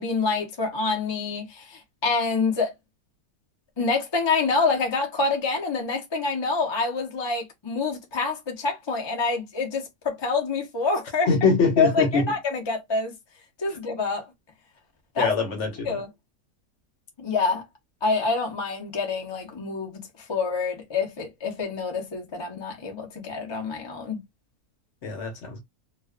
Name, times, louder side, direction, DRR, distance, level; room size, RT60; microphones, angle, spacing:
voice 1, 0.0-2.7 3.8-11.3 11.8-13.1 13.6-14.3 15.1-15.3 15.8-16.1 17.2-17.6 18.0-24.2, left 4 dB, 30° left, 0.5 m, -27 dB
voice 2, 11.3-12.2 15.2-15.9 25.0-25.6, left 4 dB, 60° left, 1.0 m, -23 dB
2.4 x 2.3 x 2.3 m
omnidirectional pair, 1.6 m